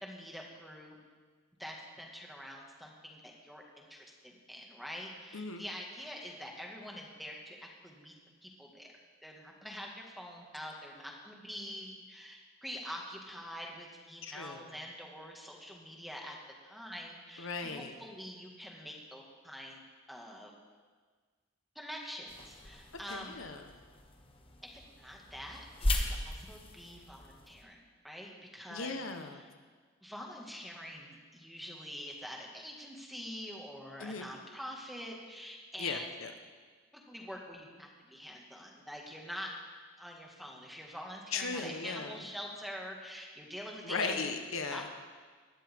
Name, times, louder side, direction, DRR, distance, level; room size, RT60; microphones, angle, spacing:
voice 1, 0.0-1.0 1.6-8.1 8.4-8.9 9.2-16.4 16.6-19.8 20.1-20.5 21.8-23.4 24.6-29.0 30.0-36.1 36.9-39.5 40.0-44.2 44.7-44.9, equal, ahead, -1 dB, 1.9 m, -45 dB
voice 2, 5.3-5.6 14.2-14.7 17.4-17.9 23.1-23.7 28.7-29.4 34.0-34.3 35.8-36.3 41.3-42.2 43.8-44.9, left 4 dB, 80° left, 6 dB, 1.2 m, -37 dB
sound 1, 22.3-27.6, left 1 dB, 25° left, 1.3 m, -38 dB
19.0 x 12.5 x 3.7 m, 1.5 s
head